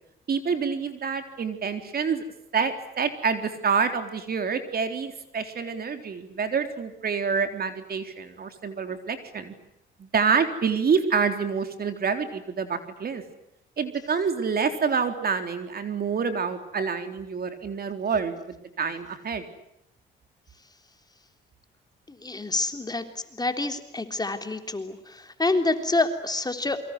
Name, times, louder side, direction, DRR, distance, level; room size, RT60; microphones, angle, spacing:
voice 1, 0.3-2.2 2.5-9.5 10.0-13.2 13.8-19.4, right 5 dB, 50° right, 8 dB, 3.9 m, -27 dB
voice 2, 22.1-23.0 23.3-26.8, left 2 dB, 20° left, 7 dB, 3.4 m, -27 dB
28.0 x 24.5 x 8.2 m, 0.77 s
cardioid pair, 90°, 20 cm